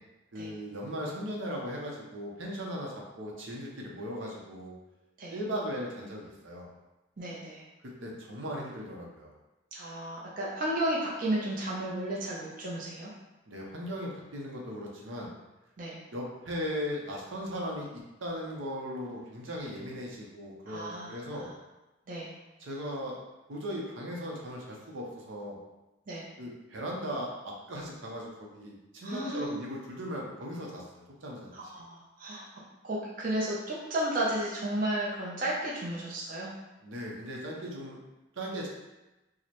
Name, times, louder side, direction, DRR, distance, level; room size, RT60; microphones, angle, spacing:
voice 1, 0.3-4.7 5.3-6.7 8.0-9.3 13.5-15.3 16.1-21.5 22.6-23.2 23.5-25.6 26.4-31.7 36.8-38.0 38.4-38.7, equal, 75° right, -2 dB, 0.7 m, -38 dB
voice 2, 7.2-7.6 9.7-13.1 15.8-16.0 20.7-21.5 22.1-22.3 26.1-26.3 29.0-29.5 31.5-32.5 32.8-36.5, right 1 dB, 45° right, -5 dB, 0.6 m, -33 dB
4.7 x 2.1 x 2.9 m, 1.0 s
head